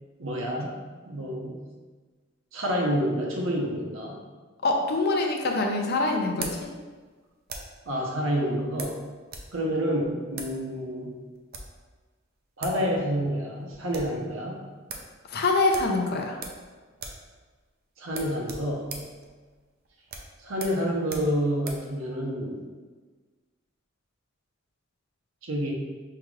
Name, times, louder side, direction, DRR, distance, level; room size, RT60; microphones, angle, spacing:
voice 1, 0.2-0.8 1.1-1.6 2.5-4.2 7.9-9.0 9.5-11.2 12.6-14.6 18.0-18.9 20.4-22.7 25.4-25.7, equal, 75° right, -1 dB, 0.9 m, -28 dB
voice 2, 4.6-6.7 15.3-16.4, left 2 dB, 50° left, 2 dB, 0.5 m, -25 dB
sound 1, 4.9-7.9 8.8-9.5 9.8-9.9 10.3-10.6 11.3-11.8 12.3-12.4 12.6-12.8 13.1-13.2 13.6-14.2 14.5-14.6 14.9-15.1 15.7-16.7 16.9-17.3 17.5-17.7 18.1-21.9, right 4 dB, 45° right, 0.5 m, -40 dB
5.7 x 2.4 x 3.2 m, 1.4 s
head